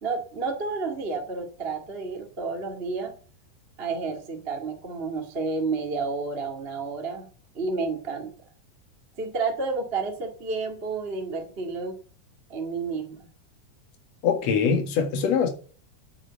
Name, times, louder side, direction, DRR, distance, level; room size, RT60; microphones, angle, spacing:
voice 1, 0.0-3.1 3.8-7.3 7.5-8.3 9.2-11.9 12.5-13.2, right 4 dB, 25° right, 1.7 m, -30 dB
voice 2, 14.2-15.5, left 6 dB, 60° left, 3.0 m, -23 dB
9.2 x 8.2 x 8.1 m
omnidirectional pair, 3.6 m